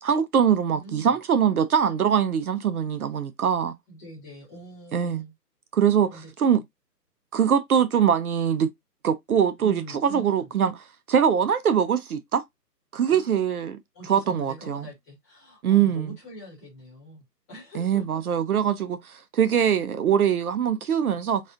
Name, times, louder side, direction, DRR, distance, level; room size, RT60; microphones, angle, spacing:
voice 1, 0.0-3.7 4.9-5.2 5.7-6.6 7.3-8.7 9.0-10.7 11.1-12.4 12.9-13.8 14.1-14.8 15.6-16.1 17.8-21.4, right 8 dB, 65° right, 0.5 m, -22 dB
voice 2, 0.7-1.2 3.6-5.3 6.1-6.6 9.6-10.5 13.1-13.3 13.9-18.2, right 1 dB, 10° left, 0.9 m, -44 dB
4.1 x 2.2 x 2.4 m
hypercardioid pair, 155°, 49 cm